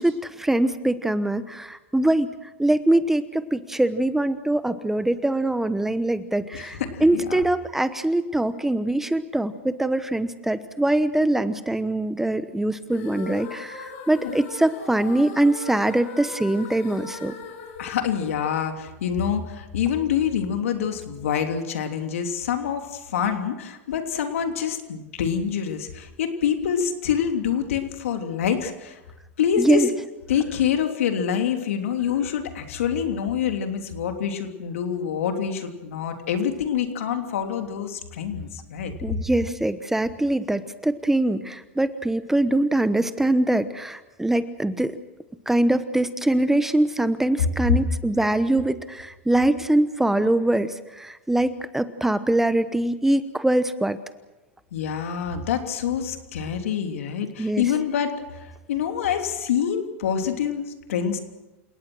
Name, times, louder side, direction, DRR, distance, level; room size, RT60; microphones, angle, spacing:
voice 1, 0.0-2.3 2.6-17.3 29.6-29.9 39.0-44.9 45.5-54.0 57.4-57.6, right 1 dB, 5° right, 12 dB, 1.1 m, -23 dB
voice 2, 6.5-7.4 14.2-14.3 17.8-29.0 29.4-29.8 30.3-38.9 54.7-61.2, left 8 dB, 80° left, 5 dB, 3.2 m, -26 dB
sound 1, 12.8-19.0, left 6 dB, 60° left, 6.2 m, -40 dB
28.5 x 18.0 x 6.3 m, 1.0 s
hypercardioid pair, 120°, 7 cm